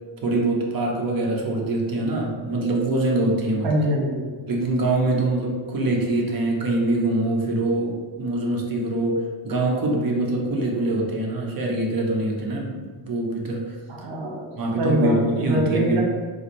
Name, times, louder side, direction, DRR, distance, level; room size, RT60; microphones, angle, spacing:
voice 1, 0.2-3.7 4.5-13.8 14.6-16.0, right 2 dB, 45° right, -1 dB, 0.8 m, -24 dB
voice 2, 3.6-4.3 13.9-14.5 14.8-16.0, equal, 80° right, -2 dB, 1.1 m, -23 dB
3.9 x 2.6 x 3.0 m, 1.5 s
cardioid pair, 90°, 47 cm